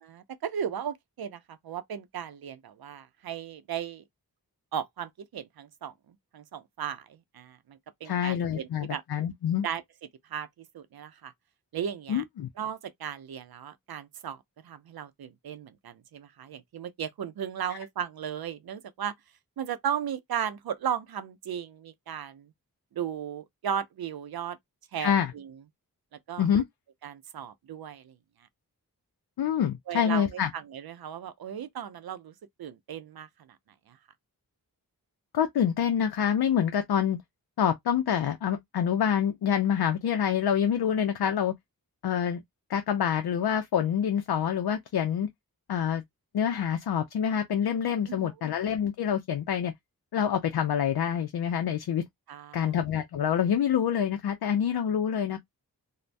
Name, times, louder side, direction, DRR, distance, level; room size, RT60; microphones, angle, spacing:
voice 1, 0.1-4.0 4.7-5.9 6.3-7.1 7.3-9.0 9.6-9.8 10.3-10.5 10.7-11.3 11.7-12.2 12.6-14.4 14.6-19.1 19.6-22.5 23.0-24.6 24.9-25.5 26.3-26.4 27.0-28.1 29.9-32.3 32.6-33.3 48.1-48.3 52.3-52.7, right 8 dB, 75° right, 0.5 m, -36 dB
voice 2, 8.0-9.7 12.1-12.5 17.7-17.8 25.0-25.3 26.4-26.6 29.4-30.5 35.3-37.2 37.6-41.5 42.0-42.4 42.7-45.3 45.7-46.0 46.3-49.7 50.1-52.0 52.5-55.4, left 8 dB, 80° left, 0.5 m, -26 dB
2.5 x 2.1 x 3.2 m
wide cardioid pair, 60°, 37 cm